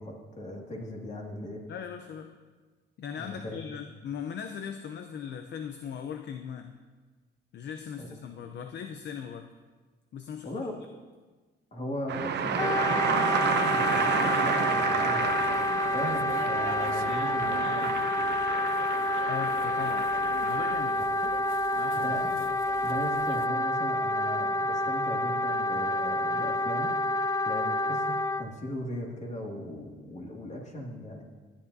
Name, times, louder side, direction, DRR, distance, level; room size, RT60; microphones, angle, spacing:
voice 1, 0.0-1.6 3.1-3.7 7.9-8.2 10.4-10.7 11.7-15.3 15.9-18.0 21.0-21.3 21.9-22.5 22.8-26.9 27.4-31.2, left 1 dB, 35° left, 0 dB, 2.2 m, -38 dB
voice 2, 1.7-2.3 3.0-6.8 7.5-9.5 10.1-10.6 19.3-20.1 20.4-21.0 21.8-22.1, left 7 dB, 60° left, 7 dB, 0.6 m, -39 dB
sound 1, 12.1-20.8, right 7 dB, 60° right, 0.9 m, -31 dB
Wind instrument woodwind instrument, 12.6-28.5, left 1 dB, 15° left, 0.4 m, -28 dB
sound 2, 15.2-23.5, right 12 dB, 90° right, 0.4 m, -42 dB
17.5 x 10.0 x 2.7 m, 1.4 s
cardioid pair, 90°, 20 cm